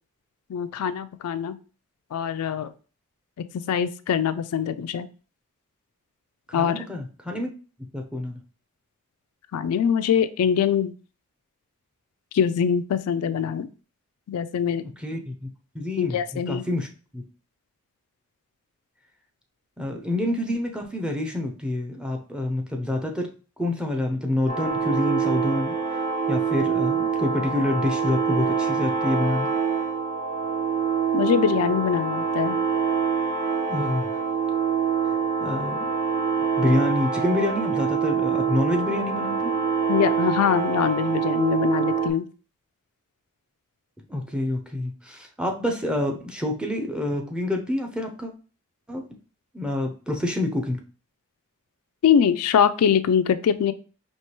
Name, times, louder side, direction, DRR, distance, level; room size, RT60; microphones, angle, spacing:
voice 1, 0.5-1.6 2.1-2.7 3.4-5.1 6.5-6.8 9.5-10.9 12.3-13.7 14.3-14.9 16.0-16.6 31.1-32.6 39.9-42.3 52.0-53.7, left 8 dB, 80° left, 12 dB, 0.3 m, -23 dB
voice 2, 6.5-7.5 7.9-8.4 15.0-15.5 15.7-16.2 16.5-16.9 17.1-17.2 19.8-23.3 23.6-25.7 26.3-29.5 33.7-34.1 35.4-35.9 36.4-39.5 44.1-48.3 48.9-49.0 49.5-50.8, left 1 dB, 5° right, 3 dB, 0.5 m, -27 dB
sound 1, 24.5-42.1, right 6 dB, 40° right, 1.0 m, -25 dB
4.6 x 3.0 x 2.9 m, 0.37 s
head